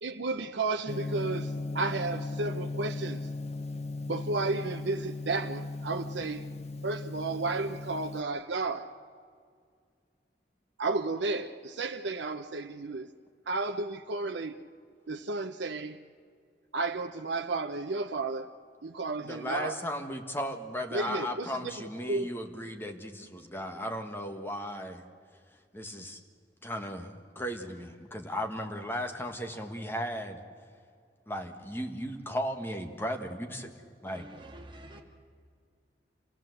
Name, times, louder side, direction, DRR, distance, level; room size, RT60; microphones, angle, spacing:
voice 1, 0.0-3.3 4.1-6.5 6.8-8.9 10.8-13.1 13.5-14.6 15.1-16.0 16.7-18.5 18.8-19.8 20.9-22.3, right 3 dB, 75° right, 5 dB, 0.7 m, -33 dB
Gong, 0.9-8.2, left 2 dB, 35° left, 0.7 m, -37 dB
voice 2, 19.3-25.0 25.7-26.2 26.6-30.4 31.3-33.7 34.0-34.3, equal, 10° left, 4 dB, 1.5 m, -36 dB
voice 3, 34.1-35.0, right 1 dB, 25° right, 2 dB, 1.9 m, -48 dB
27.5 x 16.5 x 7.9 m, 2.2 s
head